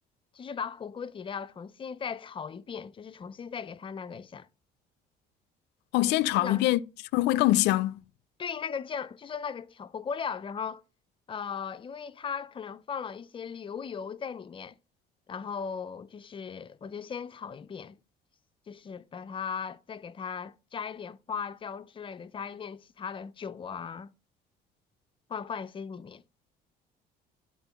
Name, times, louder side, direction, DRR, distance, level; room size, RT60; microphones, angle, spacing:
voice 1, 0.3-4.5 6.4-6.6 8.4-10.8 11.3-14.8 15.3-18.0 18.7-24.1 25.3-26.2, left 6 dB, 30° left, 0.5 m, -37 dB
voice 2, 5.9-6.8 7.1-7.9, left 16 dB, 85° left, 0.4 m, -23 dB
10.0 x 3.7 x 7.1 m
cardioid pair, 110°, 17 cm